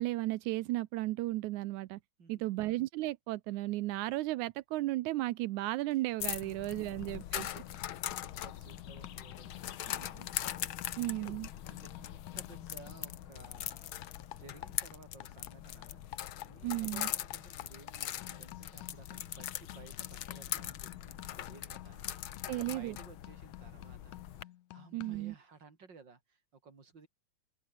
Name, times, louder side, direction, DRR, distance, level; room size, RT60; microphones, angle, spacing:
voice 1, 0.0-2.0 2.3-7.5 11.0-11.5 16.6-17.1 22.5-23.0 24.9-25.3, right 17 dB, 85° right, 2.1 m, -34 dB
voice 2, 2.2-2.6 6.6-7.2 7.6-10.3 10.8-11.4 11.7-13.9 14.2-27.1, right 4 dB, 35° right, 4.1 m, -57 dB
sound 1, 5.9-6.2 6.4-15.6 15.8-25.3, left 14 dB, 85° left, 2.4 m, -52 dB
sound 2, 6.2-24.4, left 12 dB, 60° left, 1.4 m, -41 dB
open air
omnidirectional pair, 3.3 m